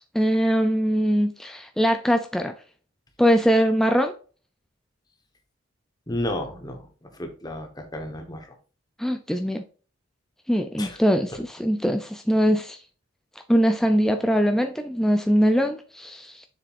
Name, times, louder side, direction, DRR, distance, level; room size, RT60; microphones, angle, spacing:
voice 1, 0.1-2.6 3.2-4.1 9.0-9.6 10.5-12.8 13.5-16.4, equal, ahead, 0.4 m, -22 dB
voice 2, 6.1-8.5 10.8-11.0, left 1 dB, 20° left, 1.3 m, -32 dB
7.2 x 6.6 x 2.6 m
head